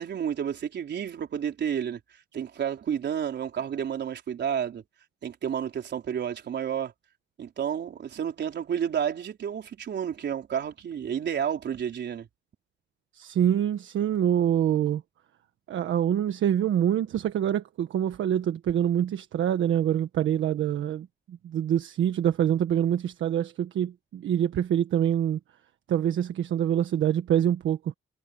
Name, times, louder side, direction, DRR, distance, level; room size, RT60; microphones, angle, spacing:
voice 1, 0.0-2.0 2.3-4.8 5.2-6.9 7.4-12.3, right 8 dB, 60° right, 4.3 m, -30 dB
voice 2, 13.1-15.0 15.7-25.4 25.9-27.8, right 10 dB, 75° right, 1.4 m, -25 dB
cardioid pair, 115°, 20 cm